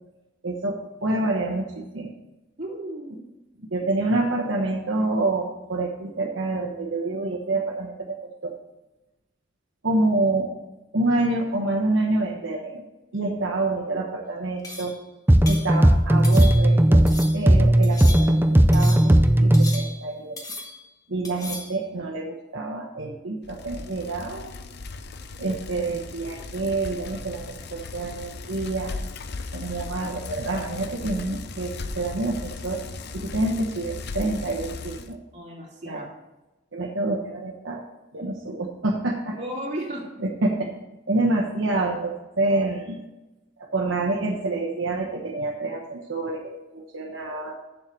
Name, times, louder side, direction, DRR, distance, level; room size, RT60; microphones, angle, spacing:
voice 1, 0.4-2.1 3.6-8.5 9.8-10.5 10.9-12.8 13.1-15.0 15.5-17.0 17.3-18.4 18.7-20.4 21.1-24.5 25.4-28.9 29.5-32.9 33.1-35.2 35.9-36.0 36.7-37.8 38.1-39.4 40.2-40.7 41.1-43.0 43.6-47.5, right 2 dB, 70° right, -1 dB, 1.1 m, -27 dB
voice 2, 2.6-3.2 29.8-29.9 35.3-36.0 39.3-40.0, right 1 dB, 40° right, -3 dB, 2.8 m, -34 dB
sound 1, 14.6-15.0 15.5-15.7 16.2-16.8 17.1-17.5 17.8-18.4 18.7-19.2 19.5-20.1 20.4-20.9 21.2-21.8, left 2 dB, 20° left, 1.3 m, -37 dB
sound 2, 15.3-19.8, right 1 dB, 10° right, 0.5 m, -16 dB
Bicycle, 23.4-35.1, left 3 dB, 55° left, 0.6 m, -37 dB
7.3 x 6.6 x 7.5 m, 1.0 s
head